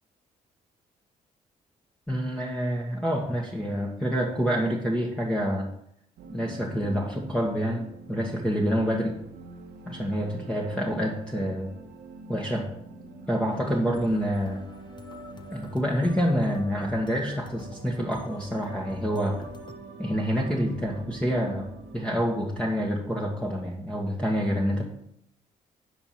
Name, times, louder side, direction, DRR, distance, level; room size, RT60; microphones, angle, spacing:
voice 1, 2.1-5.7 6.3-9.1 9.9-11.7 12.3-12.7 13.3-14.6 15.5-19.4 20.0-24.8, equal, 5° left, -2 dB, 1.7 m, -27 dB
sound 1, 6.2-22.3, right 3 dB, 80° right, 1.2 m, -45 dB
sound 2, 13.5-19.8, left 3 dB, 25° left, 1.2 m, -48 dB
10.0 x 5.8 x 4.8 m, 0.74 s
supercardioid pair, 55°, 17 cm